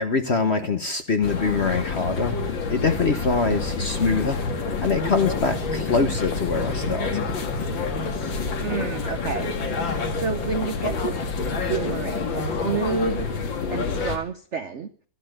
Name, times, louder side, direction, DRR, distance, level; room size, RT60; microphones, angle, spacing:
voice 1, 0.0-4.4 4.8-7.3, left 4 dB, 45° left, 9 dB, 0.9 m, -24 dB
sound 1, 1.2-14.2, left 4 dB, 65° left, 2.5 m, -28 dB
voice 2, 8.6-11.1 11.7-13.3 13.7-14.9, right 5 dB, 65° right, 10 dB, 0.7 m, -30 dB
13.5 x 12.0 x 6.5 m, 0.43 s
omnidirectional pair, 2.3 m